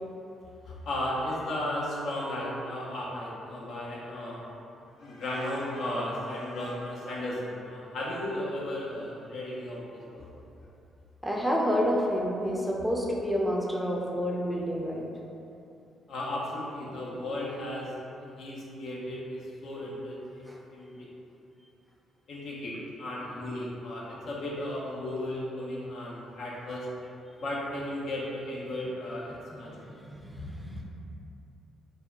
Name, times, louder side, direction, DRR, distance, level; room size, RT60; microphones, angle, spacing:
voice 1, 0.7-4.4 5.0-10.3 16.1-21.1 22.3-26.9 27.4-30.0, left 1 dB, 70° left, -5 dB, 0.5 m, -35 dB
voice 2, 11.2-15.0 16.9-17.0 20.5-20.6 23.3-23.4 30.1-30.8, equal, ahead, -3 dB, 0.5 m, -29 dB
2.1 x 2.0 x 3.5 m, 2.7 s
supercardioid pair, 50°, 0 cm